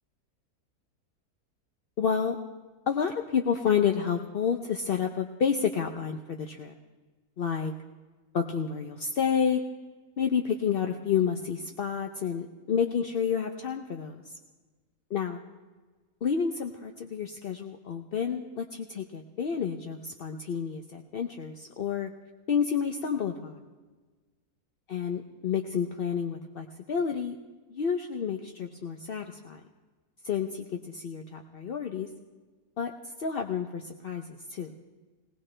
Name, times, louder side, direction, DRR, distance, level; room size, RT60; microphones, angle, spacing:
voice 1, 2.0-2.4 2.9-6.7 7.4-7.7 8.3-9.6 10.2-14.3 15.1-15.4 16.2-22.1 22.5-23.6 24.9-27.4 27.7-29.6 30.2-32.1 32.8-32.9 33.2-34.7, left 7 dB, 55° left, 3 dB, 0.6 m, -30 dB
19.5 x 19.5 x 3.3 m, 1.3 s
omnidirectional pair, 1.7 m